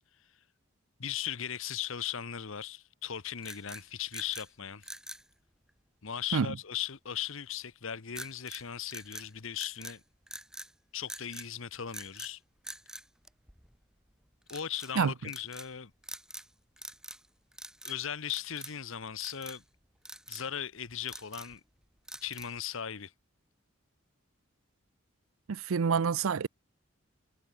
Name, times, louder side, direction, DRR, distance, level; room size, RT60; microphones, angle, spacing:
voice 1, 1.0-4.9 6.0-10.0 10.9-12.4 14.5-15.9 17.8-19.6 20.3-21.6 22.2-23.1, left 9 dB, 70° left, 1.0 m, -38 dB
sound 1, 3.4-4.5 4.8-5.3 8.1-8.6 8.9-10.0 10.3-10.7 11.1-11.5 11.9-12.3 12.6-13.8 14.5-14.9 15.3-15.7 16.0-16.5 16.8-17.3 17.5-18.0 18.3-18.8 19.2-19.6 20.0-20.5 20.9-21.6 22.1-22.6, right 1 dB, 5° right, 2.1 m, -45 dB
voice 2, 25.5-26.5, right 6 dB, 75° right, 0.5 m, -27 dB
head